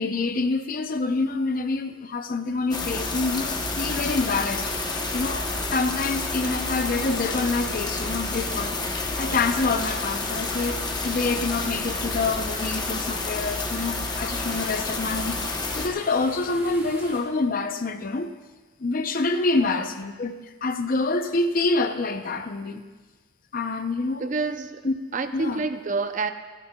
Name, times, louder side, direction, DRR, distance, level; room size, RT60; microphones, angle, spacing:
voice 1, 0.0-8.8 9.1-18.3 18.8-20.4 20.6-22.8 23.5-24.3 24.8-24.9 25.3-25.6, left 3 dB, 45° left, 0.6 m, -27 dB
sound 1, 2.7-15.9, left 3 dB, 20° left, 0.9 m, -29 dB
sound 2, 3.8-17.2, right 1 dB, 10° right, 1.5 m, -42 dB
voice 2, 19.6-19.9 24.2-24.8 25.1-26.3, right 3 dB, 40° right, 0.6 m, -28 dB
27.5 x 9.9 x 2.3 m
head